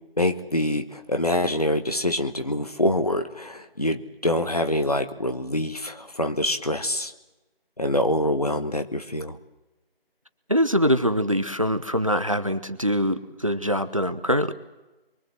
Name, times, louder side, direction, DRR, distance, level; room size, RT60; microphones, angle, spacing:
voice 1, 0.2-7.1 7.8-9.4, left 1 dB, 40° left, 7 dB, 1.3 m, -25 dB
voice 2, 10.5-14.5, equal, 35° right, 10 dB, 0.9 m, -23 dB
24.5 x 23.5 x 7.7 m, 1.1 s
figure-of-eight pair, 170°, 30 cm